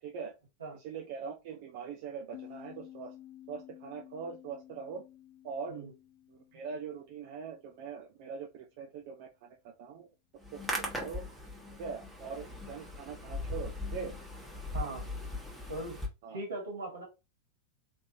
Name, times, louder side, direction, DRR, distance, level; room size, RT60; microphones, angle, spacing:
voice 1, 0.0-0.3 0.7-3.1 3.5-5.0 5.4-5.9 6.3-10.1 10.5-11.4 11.8-14.1 16.2-16.4, right 6 dB, 50° right, 2 dB, 0.6 m, -42 dB
sound 1, 2.3-7.7, left 12 dB, 50° left, 1.0 m, -53 dB
Hands, 10.4-16.1, left 1 dB, ahead, 1.3 m, -39 dB
voice 2, 14.7-15.1 15.7-17.0, right 2 dB, 70° right, 0 dB, 1.9 m, -40 dB
3.5 x 3.1 x 2.7 m, 0.26 s
figure-of-eight pair, 90°, 0 cm